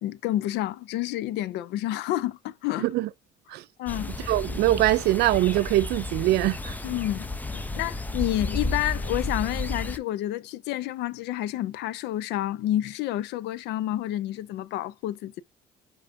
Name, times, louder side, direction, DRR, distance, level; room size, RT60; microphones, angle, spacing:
voice 1, 0.0-2.9 3.8-4.3 6.8-15.4, left 14 dB, 85° left, 0.5 m, -29 dB
voice 2, 2.8-3.1 3.5-3.6 4.2-6.8, right 16 dB, 75° right, 0.4 m, -23 dB
sound 1, 3.9-10.0, left 2 dB, 10° left, 0.5 m, -32 dB
5.0 x 3.9 x 2.4 m
cardioid pair, 110°, 17 cm